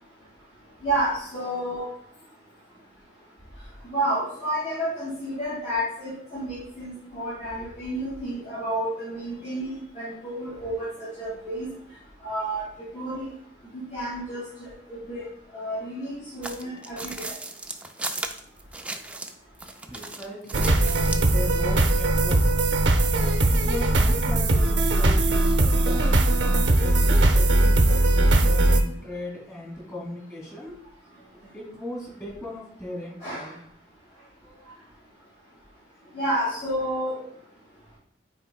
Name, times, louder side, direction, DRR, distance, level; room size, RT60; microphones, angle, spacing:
voice 1, 0.8-1.8 3.9-10.8 11.2-11.7 12.2-12.6 12.9-13.2 13.9-14.4 15.1-15.2 15.5-17.0 33.2-33.4 36.1-37.1, right 1 dB, 40° left, -10 dB, 2.6 m, -30 dB
sound 1, 16.4-19.3 19.6-21.3, right 2 dB, 5° right, 0.3 m, -35 dB
voice 2, 19.9-22.4 22.9-25.4 25.8-30.8 31.5-33.6, left 1 dB, 15° left, -2 dB, 2.6 m, -38 dB
sound 2, 20.5-28.8, right 2 dB, 80° right, 0.7 m, -20 dB
9.3 x 4.4 x 2.3 m, 0.65 s
head